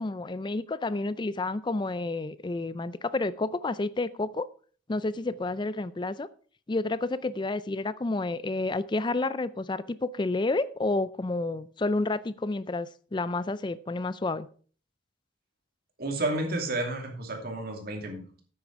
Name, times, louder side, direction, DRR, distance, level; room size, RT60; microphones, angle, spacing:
voice 1, 0.0-4.5 4.9-6.3 6.7-14.5, left 2 dB, 25° left, 16 dB, 0.4 m, -30 dB
voice 2, 16.0-18.4, right 2 dB, 50° right, 2 dB, 2.6 m, -31 dB
9.1 x 8.7 x 4.7 m, 0.43 s
head